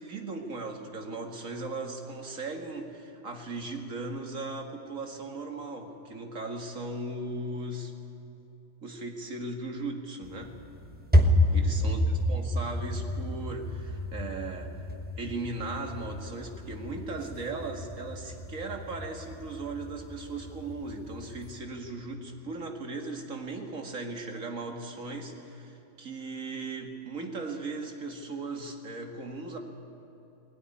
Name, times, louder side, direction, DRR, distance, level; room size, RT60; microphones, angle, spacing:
voice 1, 0.0-7.9 8.8-10.6 11.5-14.9 15.2-29.6, right 3 dB, 85° right, 3 dB, 2.4 m, -37 dB
sound 1, 10.2-21.6, left 1 dB, 10° right, 1.1 m, -30 dB
20.5 x 17.5 x 9.9 m, 3.0 s
omnidirectional pair, 1.4 m